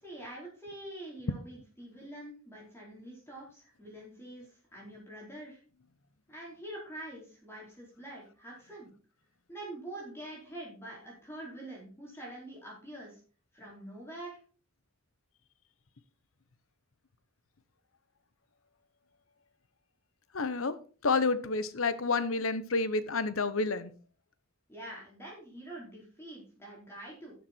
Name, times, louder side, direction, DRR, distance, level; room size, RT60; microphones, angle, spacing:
voice 1, 0.0-5.6 6.3-8.9 9.5-13.2 13.5-14.4 24.7-27.3, right 1 dB, 10° left, 4.5 m, -45 dB
voice 2, 20.3-20.7 21.0-23.9, left 3 dB, 85° left, 1.0 m, -29 dB
12.0 x 7.2 x 4.5 m
head